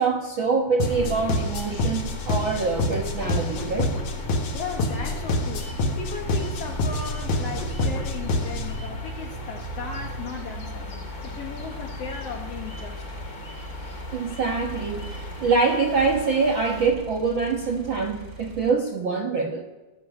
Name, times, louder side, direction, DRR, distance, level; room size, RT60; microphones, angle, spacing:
voice 1, 0.0-3.9 13.8-19.6, right 4 dB, 80° right, 2 dB, 1.1 m, -25 dB
sound 1, 0.8-8.8, left 1 dB, 60° left, 2.8 m, -27 dB
nature river birds, 0.8-16.9, left 2 dB, 35° left, 1.7 m, -42 dB
sound 2, 2.6-18.7, right 1 dB, 30° right, 2.5 m, -39 dB
voice 2, 4.5-5.7 6.0-10.9 11.2-13.1, left 5 dB, 75° left, 2 dB, 1.4 m, -36 dB
18.5 x 7.2 x 9.7 m, 1.2 s
omnidirectional pair, 4.2 m